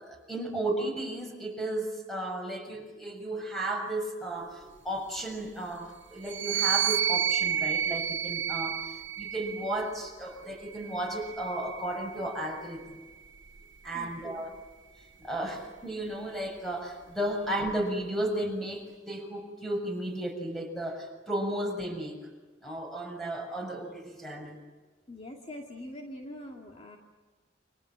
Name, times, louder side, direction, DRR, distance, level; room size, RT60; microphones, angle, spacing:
voice 1, 0.0-13.0 13.8-14.5 15.2-22.2 22.6-24.6, right 1 dB, ahead, 2 dB, 6.8 m, -34 dB
sound 1, 6.2-9.8 10.7-12.3, right 9 dB, 80° right, 1.1 m, -30 dB
voice 2, 13.9-14.5 25.1-27.0, left 1 dB, 35° left, 0 dB, 2.5 m, -43 dB
29.5 x 26.5 x 7.6 m, 1.3 s
head